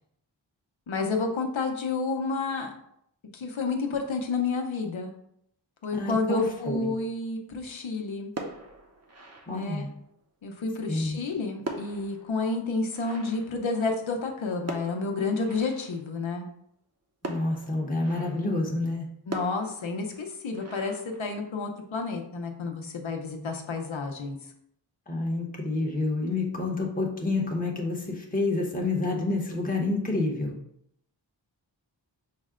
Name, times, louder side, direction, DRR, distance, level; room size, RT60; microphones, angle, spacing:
voice 1, 0.9-2.7 3.3-5.1 5.8-8.3 9.5-9.9 10.4-16.5 19.3-24.4, left 3 dB, 85° left, 4 dB, 0.8 m, -30 dB
voice 2, 5.9-6.9 9.5-9.9 10.9-11.2 17.2-19.1 25.1-30.6, left 2 dB, 20° left, -1 dB, 0.9 m, -28 dB
sound 1, 6.3-7.1 8.2-10.1 11.1-14.2 14.7-16.2 17.2-18.6 19.3-21.8, right 2 dB, 35° right, 0.7 m, -42 dB
5.6 x 2.1 x 3.6 m, 0.72 s
wide cardioid pair, 60°, 46 cm